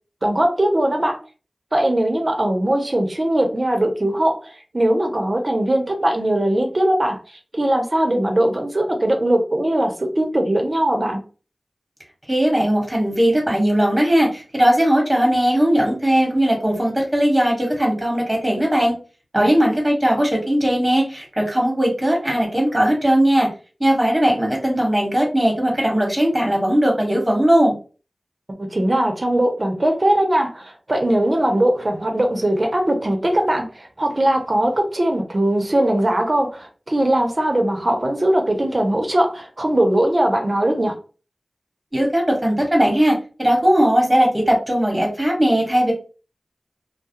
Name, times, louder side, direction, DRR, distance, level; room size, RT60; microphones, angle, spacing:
voice 1, 0.2-1.2 1.7-7.2 7.5-11.2 19.3-19.5 28.6-41.0, right 1 dB, 45° right, 0.7 m, -20 dB
voice 2, 12.3-18.9 19.3-23.5 23.8-27.7 41.9-45.9, equal, 20° right, 1.2 m, -18 dB
2.3 x 2.0 x 2.8 m
wide cardioid pair, 45°, 0 cm